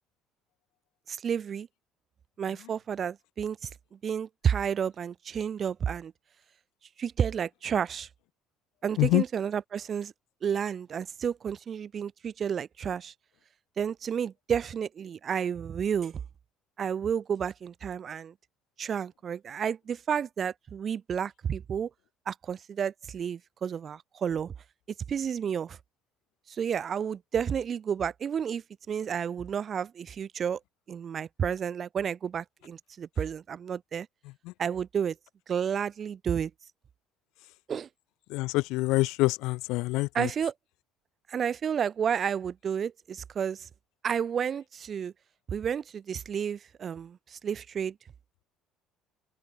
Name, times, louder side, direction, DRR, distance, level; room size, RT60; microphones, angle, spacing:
voice 1, 1.1-1.7 2.4-6.1 7.0-8.1 8.8-10.1 10.4-13.1 13.8-16.2 16.8-18.3 18.8-21.9 22.3-24.5 25.1-25.8 26.5-30.6 30.9-34.1 34.6-35.2 35.5-36.5 37.7-37.9 40.1-40.5 41.3-43.7 44.0-45.1 45.5-48.0, right 7 dB, 40° right, 3.0 m, -31 dB
voice 2, 38.3-40.3, left 21 dB, 80° left, 1.8 m, -26 dB
open air
cardioid pair, 110°, 0 cm